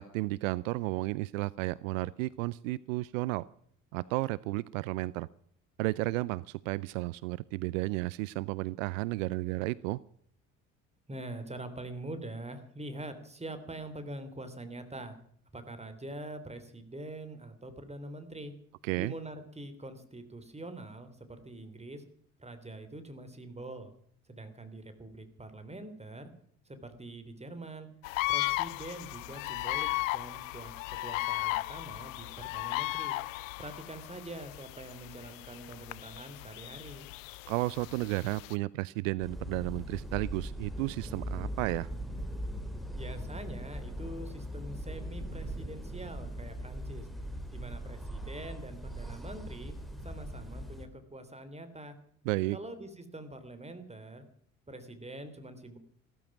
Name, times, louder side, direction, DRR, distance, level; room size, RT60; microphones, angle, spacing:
voice 1, 0.0-3.4 3.9-5.3 5.8-10.0 18.8-19.1 37.5-41.9 52.3-52.6, right 20 dB, 70° right, 21 dB, 0.5 m, -33 dB
voice 2, 11.1-15.1 15.5-18.5 19.0-22.0 22.4-23.9 24.3-26.3 26.6-27.9 28.3-33.2 33.6-37.1 42.9-47.1 47.5-49.7 50.0-52.0 52.5-54.2 54.7-55.8, right 1 dB, 15° right, 9 dB, 3.3 m, -44 dB
sound 1, 28.0-38.6, left 20 dB, 75° left, 0.6 m, -36 dB
sound 2, 39.2-50.9, equal, ahead, 3.3 m, -40 dB
15.5 x 13.5 x 6.1 m, 0.63 s
figure-of-eight pair, 50°, 40 cm